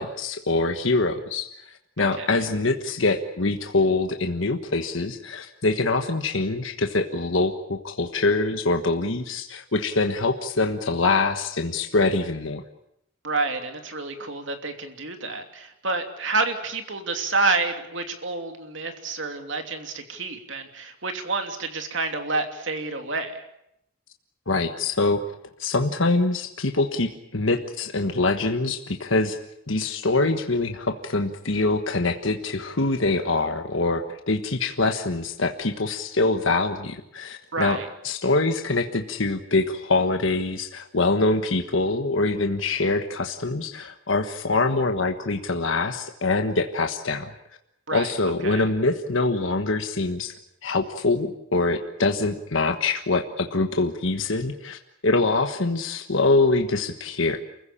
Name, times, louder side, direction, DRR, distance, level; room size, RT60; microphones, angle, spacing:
voice 1, 0.0-12.6 24.5-25.2 25.6-29.4 29.7-37.8 38.0-47.3 47.9-50.3 50.6-57.4, left 3 dB, 70° left, 6 dB, 1.4 m, -24 dB
voice 2, 13.2-23.4 37.5-37.9 47.9-48.1 48.4-48.6, right 3 dB, 60° right, 5 dB, 3.0 m, -28 dB
29.0 x 15.5 x 8.8 m, 0.80 s
head